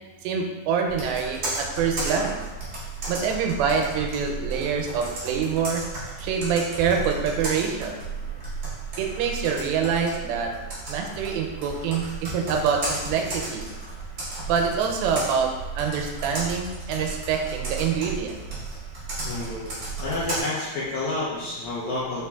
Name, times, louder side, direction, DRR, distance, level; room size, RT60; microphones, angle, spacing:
voice 1, 0.2-2.4 3.1-5.8 6.2-8.1 9.0-10.5 10.9-13.7 14.5-18.4, right 6 dB, 85° right, 2 dB, 2.3 m, -26 dB
Computer keyboard, 0.9-20.4, right 3 dB, 65° right, 0.9 m, -34 dB
voice 2, 19.2-19.7 20.0-22.3, left 2 dB, 80° left, -8 dB, 1.7 m, -29 dB
5.4 x 3.0 x 2.2 m, 1.2 s
omnidirectional pair, 4.1 m